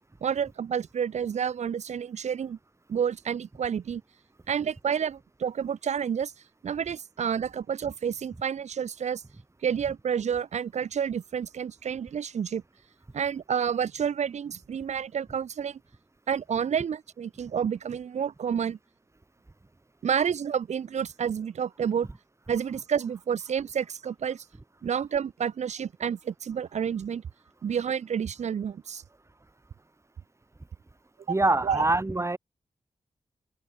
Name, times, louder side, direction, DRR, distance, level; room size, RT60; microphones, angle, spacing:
voice 1, 0.2-2.6 2.9-4.0 4.5-6.3 6.6-9.2 9.6-12.6 13.1-15.8 16.3-18.8 20.0-22.1 22.5-24.4 24.8-27.2 27.6-29.0 31.6-31.8, right 7 dB, 85° right, 5.6 m, -29 dB
voice 2, 31.3-32.4, right 2 dB, 25° right, 4.7 m, -24 dB
cardioid pair, 70°, 11 cm